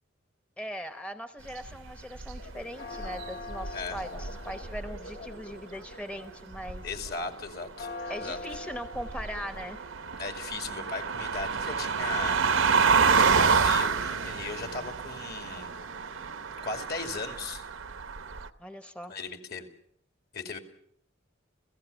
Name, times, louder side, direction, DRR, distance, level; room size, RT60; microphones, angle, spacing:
voice 1, 0.6-6.9 8.1-9.8 18.6-19.1, equal, 5° left, 8 dB, 0.9 m, -40 dB
sound 1, 1.5-2.6 3.0-5.1 6.5-7.1 8.4-18.5, right 5 dB, 80° right, 0.9 m, -28 dB
Church bell, 2.4-17.3, left 2 dB, 75° left, 4.6 m, -46 dB
voice 2, 6.8-7.9 8.2-8.4 10.2-12.7 13.2-15.7 16.6-17.7 19.1-19.7 20.3-20.6, left 4 dB, 55° left, 6 dB, 2.6 m, -37 dB
29.5 x 16.5 x 6.9 m, 0.69 s
head